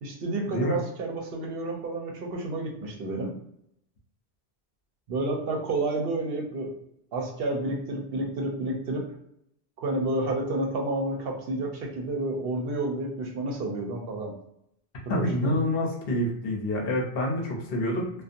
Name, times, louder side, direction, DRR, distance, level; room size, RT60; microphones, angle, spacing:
voice 1, 0.0-3.3 5.1-6.7 7.1-9.1 9.8-14.3 15.1-15.5, right 2 dB, 70° right, 1 dB, 0.8 m, -30 dB
voice 2, 15.1-18.1, left 1 dB, 65° left, -1 dB, 0.8 m, -27 dB
2.6 x 2.2 x 2.5 m, 0.75 s
omnidirectional pair, 1.1 m